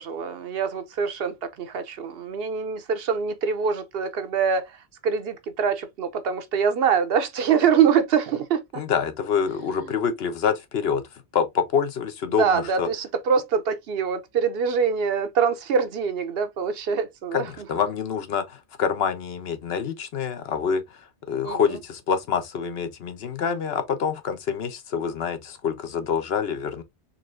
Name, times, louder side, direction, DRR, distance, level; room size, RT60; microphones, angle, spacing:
voice 1, 0.0-8.8 9.8-9.9 12.4-17.5 21.4-21.6, right 6 dB, 65° right, 0.8 m, -24 dB
voice 2, 8.8-12.9 17.3-26.8, left 7 dB, 70° left, 1.0 m, -26 dB
4.1 x 3.0 x 2.5 m
omnidirectional pair, 1.1 m